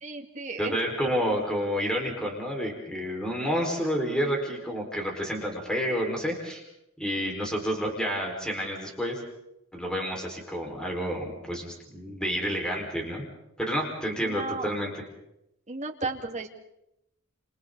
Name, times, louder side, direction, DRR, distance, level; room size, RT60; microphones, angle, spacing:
voice 1, 0.0-0.8 14.2-14.7 15.7-16.5, right 3 dB, 30° right, 2 dB, 2.0 m, -34 dB
voice 2, 0.6-6.6 7.0-9.2 9.7-13.2 13.6-14.9, equal, 5° left, 0 dB, 4.7 m, -29 dB
29.5 x 28.5 x 4.0 m, 0.83 s
head